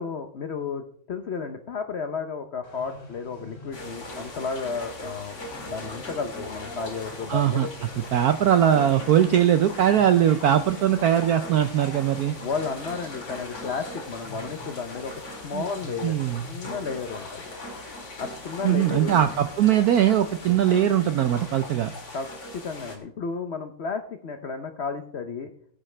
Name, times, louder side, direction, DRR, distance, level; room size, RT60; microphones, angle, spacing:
voice 1, 0.0-5.4 5.6-7.7 12.4-15.1 15.4-16.2 16.4-17.4 18.2-19.2 22.1-22.3 22.5-25.5, left 5 dB, 75° left, 6 dB, 0.5 m, -32 dB
sound 1, 2.6-20.8, left 2 dB, 55° left, 3.5 m, -46 dB
sound 2, 3.7-23.0, left 1 dB, 40° left, 2.2 m, -40 dB
voice 2, 7.3-12.4 15.5-15.6 16.0-16.4 18.6-21.9, right 10 dB, 75° right, 10 dB, 0.8 m, -21 dB
18.5 x 8.6 x 3.3 m, 0.65 s
omnidirectional pair, 2.1 m